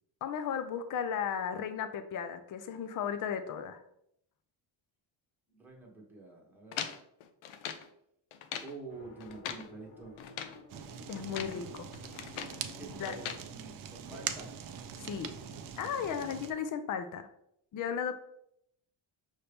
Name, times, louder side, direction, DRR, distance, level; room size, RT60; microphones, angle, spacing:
voice 1, 0.2-3.8 11.1-11.9 13.0-13.2 15.0-15.3 15.8-17.3 17.7-18.1, left 7 dB, 45° left, 9 dB, 0.5 m, -35 dB
voice 2, 5.5-6.9 8.6-10.1 12.7-14.5, right 3 dB, 5° right, -3 dB, 1.0 m, -48 dB
sound 1, 6.7-7.9 8.3-8.8 9.2-9.7 10.2-10.6 11.2-11.6 11.9-12.6 13.0-13.5, left 8 dB, 90° left, 0.6 m, -41 dB
sound 2, 8.9-16.2, left 3 dB, 60° left, 1.3 m, -55 dB
Fire, 10.7-16.5, right 8 dB, 45° right, 0.5 m, -43 dB
5.7 x 2.8 x 3.4 m, 0.74 s
cardioid pair, 125°, 47 cm